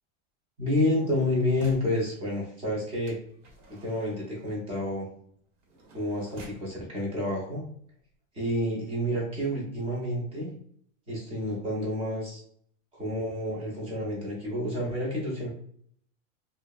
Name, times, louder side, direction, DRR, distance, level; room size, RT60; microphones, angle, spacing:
voice 1, 0.6-3.2 3.7-5.1 5.9-7.6 8.4-10.5 11.1-12.4 12.9-15.5, left 1 dB, 15° right, -3 dB, 0.6 m, -29 dB
RG Window, 0.7-2.0 3.1-6.7 7.5-7.6 7.9-8.2, right 2 dB, 70° right, 1.0 m, -51 dB
2.7 x 2.0 x 2.2 m, 0.64 s
supercardioid pair, 155°, 38 cm